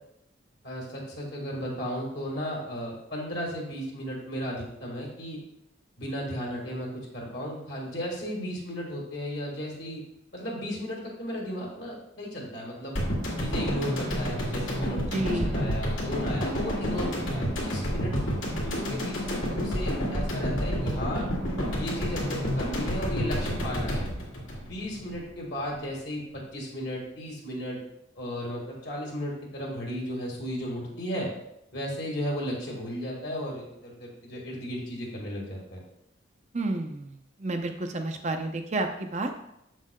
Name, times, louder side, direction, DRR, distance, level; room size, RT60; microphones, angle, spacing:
voice 1, 0.6-5.4 6.0-10.0 10.3-13.0 13.4-18.1 18.6-21.3 21.8-24.1 24.6-26.2 26.5-27.8 28.1-31.3 31.7-35.8, equal, 55° left, -2 dB, 1.6 m, -35 dB
sound 1, 12.9-25.3 25.6-25.7, equal, 75° left, 2.2 m, -29 dB
voice 2, 15.1-15.6 36.5-39.4, right 2 dB, 35° right, 6 dB, 0.5 m, -31 dB
7.3 x 7.2 x 2.2 m, 0.80 s
head